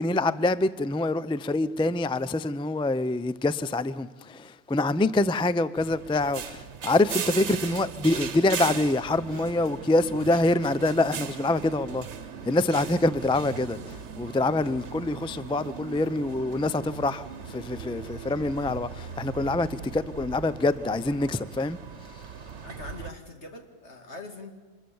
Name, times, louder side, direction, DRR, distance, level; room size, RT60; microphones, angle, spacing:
voice 1, 0.0-12.1 12.5-21.8, left 2 dB, 10° left, 0.4 m, -25 dB
sound 1, 5.8-23.1, right 6 dB, 85° right, 1.3 m, -39 dB
voice 2, 22.6-24.5, left 2 dB, 75° left, 2.8 m, -42 dB
25.5 x 21.5 x 7.1 m
omnidirectional pair, 1.1 m